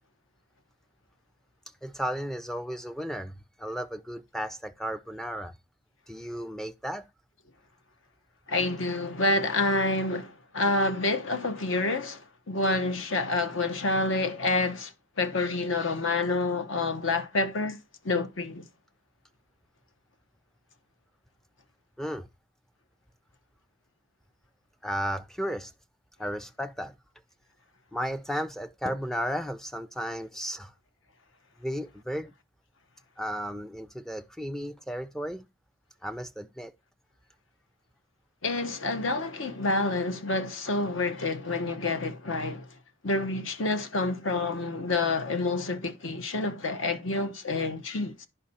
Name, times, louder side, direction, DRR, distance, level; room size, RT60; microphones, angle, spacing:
voice 1, 1.8-5.6 6.1-7.1 22.0-22.3 24.8-25.7 26.2-26.9 27.9-30.7 31.6-32.3 33.2-35.4 36.0-36.7, equal, ahead, 0.4 m, -34 dB
voice 2, 8.5-14.9 15.2-17.8 18.0-18.7 38.4-42.8 43.0-48.3, left 2 dB, 60° left, 1.0 m, -28 dB
10.0 x 5.4 x 4.2 m
head